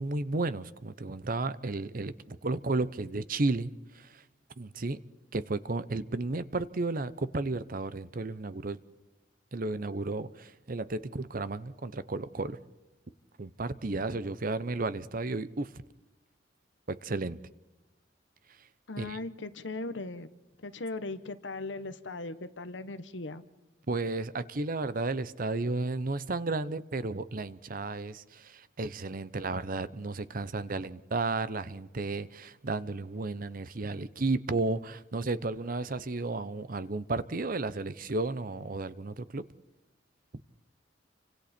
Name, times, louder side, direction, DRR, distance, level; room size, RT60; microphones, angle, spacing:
voice 1, 0.0-4.2 4.6-5.0 5.3-8.8 9.5-12.6 13.4-15.8 16.9-17.4 19.0-19.2 23.9-39.4, right 3 dB, 50° right, 0.8 m, -33 dB
voice 2, 18.9-20.3 20.6-23.4, left 2 dB, 75° left, 1.2 m, -38 dB
29.5 x 25.0 x 4.4 m
head